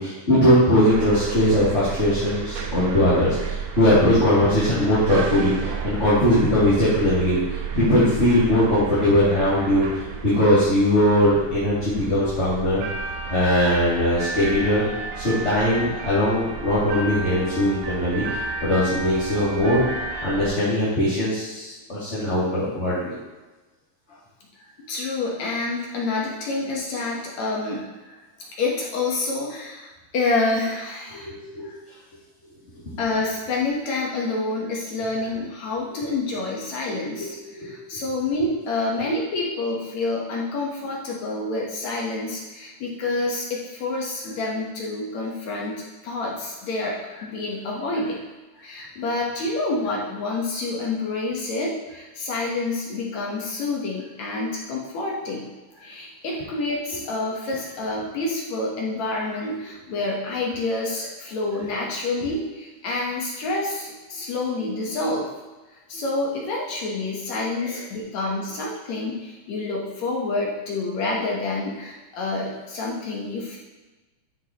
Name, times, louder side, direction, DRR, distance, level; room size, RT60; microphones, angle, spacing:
voice 1, 0.0-7.4 7.7-9.8 10.2-12.8 13.3-14.8 15.2-18.2 18.6-19.8 20.2-23.1 31.1-31.7 37.6-37.7 67.6-67.8, left 1 dB, 20° left, -13 dB, 2.5 m, -20 dB
sound 1, 0.9-20.5, right 4 dB, 75° right, 2.6 m, -32 dB
voice 2, 24.9-27.9 28.6-31.3 33.0-48.2 48.6-55.5 55.8-65.3 65.9-73.6, left 2 dB, 65° left, -3 dB, 2.3 m, -28 dB
12.5 x 6.4 x 3.0 m, 1.2 s
omnidirectional pair, 3.9 m